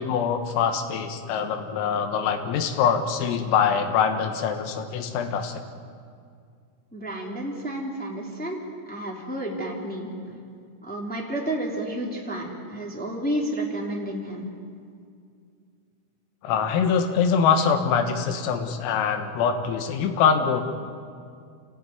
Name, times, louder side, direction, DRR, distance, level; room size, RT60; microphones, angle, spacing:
voice 1, 0.0-5.6 16.4-20.6, left 6 dB, 85° left, 6 dB, 4.1 m, -24 dB
voice 2, 6.9-8.6 8.8-10.4 10.8-14.5, right 1 dB, 5° left, -2 dB, 1.0 m, -31 dB
27.5 x 17.5 x 9.3 m, 2.3 s
omnidirectional pair, 5.9 m